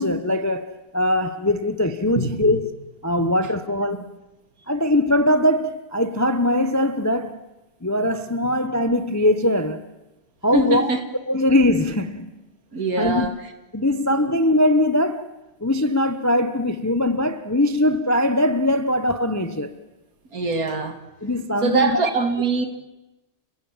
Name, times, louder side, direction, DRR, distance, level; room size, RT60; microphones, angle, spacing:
voice 1, 0.0-2.6 3.0-4.1 4.7-7.4 7.8-9.8 10.4-10.9 11.3-12.3 13.0-13.3 13.7-15.3 15.6-19.7 21.2-22.0, left 1 dB, 15° left, 0.7 m, -21 dB
voice 2, 2.1-2.6 3.2-3.3 10.5-11.0 12.7-13.5 20.3-21.0 21.6-22.7, right 3 dB, 60° right, 2.7 m, -23 dB
30.0 x 16.5 x 7.3 m
omnidirectional pair, 1.7 m